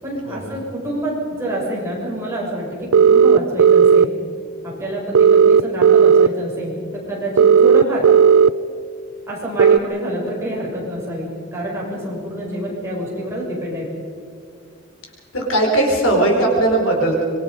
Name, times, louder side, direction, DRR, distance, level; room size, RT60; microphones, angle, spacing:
voice 1, 0.0-4.1 4.6-8.1 9.3-13.9, right 1 dB, 15° right, -5 dB, 6.6 m, -27 dB
sound 1, 2.9-4.1 5.2-6.3 7.4-8.5 9.6-9.8, right 6 dB, 85° right, 0.5 m, -11 dB
voice 2, 15.3-17.2, right 2 dB, 75° left, 1 dB, 4.5 m, -18 dB
25.5 x 22.5 x 5.3 m, 2.2 s
head